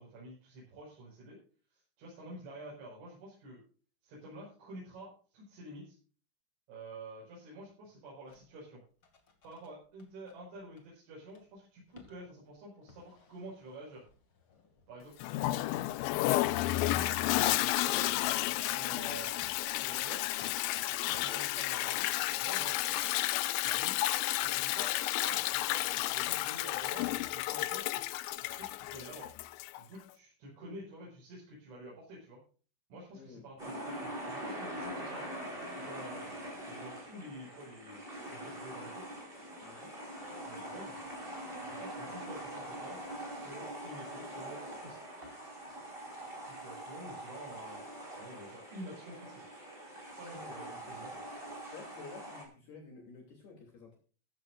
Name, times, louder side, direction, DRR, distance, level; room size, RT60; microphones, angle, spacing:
voice 1, 0.0-1.4 1.7-3.6 4.0-6.0 6.7-8.8 9.4-14.0 14.9-15.1 16.9-19.3 19.7-20.2 21.0-23.2 23.6-24.0 24.4-29.3 29.8-32.4 32.9-35.2 35.8-36.4 36.7-38.0 38.3-39.1 40.5-41.0 41.6-43.0 43.3-45.0 46.4-47.8 48.2-49.5 50.1-51.2, right 1 dB, 75° right, -5 dB, 7.7 m, -49 dB
sound 1, 8.3-8.5 9.0-9.7 10.0-10.1 10.3-10.4 10.8-10.9 11.3-11.4 11.9-12.2 12.9-14.8 15.3-15.4 15.7-17.5 18.2-18.5 19.1-19.6 20.4-21.3, left 9 dB, 35° left, 2.3 m, -45 dB
Toilet flush, 15.2-29.8, left 16 dB, 80° left, 2.9 m, -32 dB
voice 2, 33.1-33.5 39.6-39.9 50.3-51.1 51.7-54.0, left 4 dB, 60° left, 0 dB, 4.7 m, -51 dB
sound 2, 33.6-52.4, right 1 dB, 10° right, 5.1 m, -43 dB
15.5 x 14.0 x 2.5 m, 0.40 s
omnidirectional pair, 5.5 m